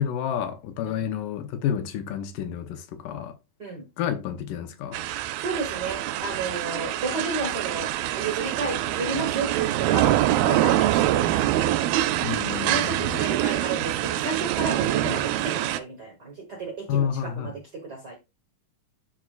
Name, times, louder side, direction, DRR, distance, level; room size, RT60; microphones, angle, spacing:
voice 1, 0.0-3.4 4.0-5.0 12.2-13.2 16.9-17.6, left 8 dB, 75° left, 2.3 m, -29 dB
sound 1, 4.9-15.8, right 14 dB, 85° right, 2.4 m, -25 dB
voice 2, 5.4-10.1 10.4-11.7 12.5-18.2, right 3 dB, 50° right, 1.2 m, -32 dB
12.5 x 4.3 x 2.4 m
omnidirectional pair, 4.1 m